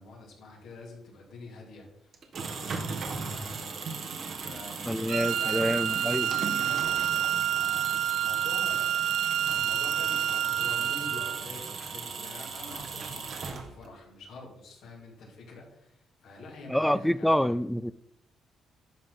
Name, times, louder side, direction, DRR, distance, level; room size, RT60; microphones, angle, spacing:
voice 1, 0.0-3.7 4.3-9.0 9.4-17.6, left 2 dB, 75° left, 2.8 m, -46 dB
sound 1, 2.1-14.0, right 5 dB, 55° right, 1.4 m, -38 dB
voice 2, 4.9-6.3 16.7-17.9, equal, 5° left, 0.3 m, -27 dB
Wind instrument woodwind instrument, 5.1-11.4, right 11 dB, 80° right, 0.3 m, -28 dB
11.0 x 3.9 x 5.7 m
cardioid pair, 90°, 0 cm